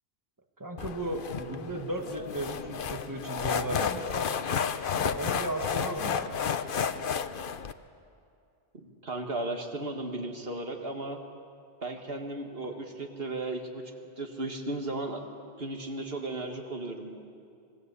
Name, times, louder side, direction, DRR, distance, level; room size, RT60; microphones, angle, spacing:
voice 1, 0.6-4.4 4.9-6.4, right 1 dB, 20° right, 4 dB, 1.7 m, -36 dB
sound 1, 0.8-7.7, left 7 dB, 60° left, 0.9 m, -32 dB
voice 2, 8.7-11.2 11.8-13.8 14.2-15.2 15.6-17.2, right 2 dB, 65° right, 4 dB, 2.2 m, -35 dB
26.0 x 20.5 x 8.3 m, 2.4 s
omnidirectional pair, 1.1 m